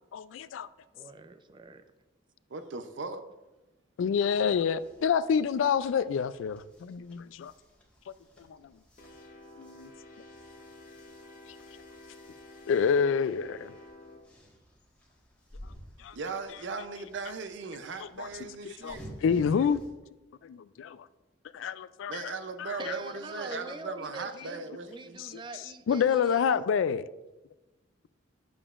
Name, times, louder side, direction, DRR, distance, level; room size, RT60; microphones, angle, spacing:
voice 1, 0.1-0.7 4.0-7.5 9.6-9.9 12.7-13.7 16.0-16.1 18.0-18.3 18.6-19.8 20.4-21.1 21.5-22.3 22.6-22.8 25.2-25.3 25.9-27.0, left 6 dB, 85° left, 0.3 m, -28 dB
voice 2, 0.9-1.8 22.8-26.4, right 3 dB, 25° right, 0.4 m, -43 dB
voice 3, 2.5-3.2 16.1-19.0 22.1-25.2, right 4 dB, 70° right, 0.6 m, -38 dB
sound 1, 4.7-19.9, equal, 5° left, 1.5 m, -53 dB
sound 2, 9.0-14.2, left 2 dB, 45° left, 0.8 m, -51 dB
8.8 x 6.9 x 2.4 m
head